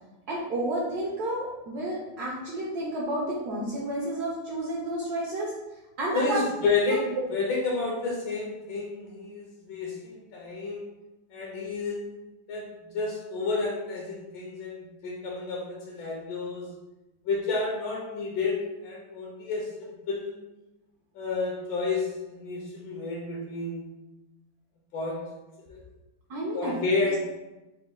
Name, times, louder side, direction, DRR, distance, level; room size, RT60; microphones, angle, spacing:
voice 1, 0.3-5.5 6.0-6.4 6.9-7.0 26.3-26.8, right 1 dB, 70° right, -4 dB, 1.0 m, -31 dB
voice 2, 6.1-10.8 11.3-12.0 12.5-16.7 17.2-19.7 20.1-20.4 21.1-23.8 24.9-25.3 25.7-25.8 26.5-27.2, left 3 dB, 75° left, -3 dB, 1.4 m, -30 dB
4.1 x 2.2 x 3.5 m, 1.0 s
omnidirectional pair, 2.2 m